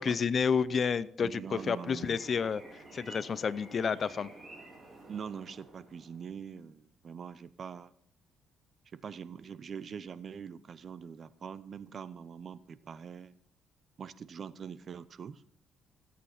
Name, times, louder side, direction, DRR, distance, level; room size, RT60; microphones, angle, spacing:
voice 1, 0.0-2.6 2.9-4.3, left 6 dB, 45° left, 18 dB, 0.5 m, -30 dB
voice 2, 1.2-2.2 5.1-7.9 8.9-13.3 14.0-15.4, right 7 dB, 45° right, 16 dB, 0.7 m, -43 dB
sound 1, 1.5-6.4, right 2 dB, 20° right, 4.0 m, -51 dB
16.0 x 8.5 x 4.3 m, 0.66 s
cardioid pair, 90°, 0 cm